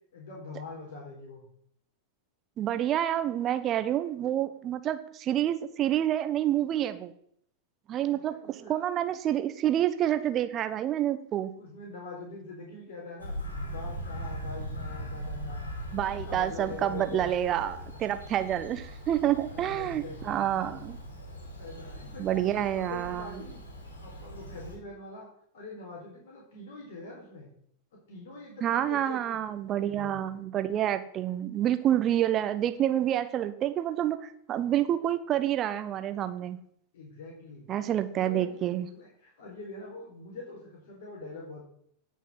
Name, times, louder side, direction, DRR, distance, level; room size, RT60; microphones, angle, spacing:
voice 1, 0.1-1.5 8.1-8.9 10.6-10.7 11.6-15.7 16.1-17.3 19.4-20.4 21.6-23.6 24.0-25.3 25.5-27.5 28.1-29.4 29.7-30.4 36.9-37.7 38.1-41.7, left 3 dB, 55° left, -2 dB, 4.5 m, -44 dB
voice 2, 2.6-7.1 7.9-11.5 15.9-21.0 22.2-23.2 28.6-36.6 37.7-38.9, right 11 dB, 30° right, 11 dB, 1.3 m, -28 dB
Bird vocalization bird call bird song, 13.2-24.8, equal, 75° left, 4.7 m, -40 dB
17.5 x 6.3 x 7.7 m, 0.67 s
figure-of-eight pair, 90°, 0 cm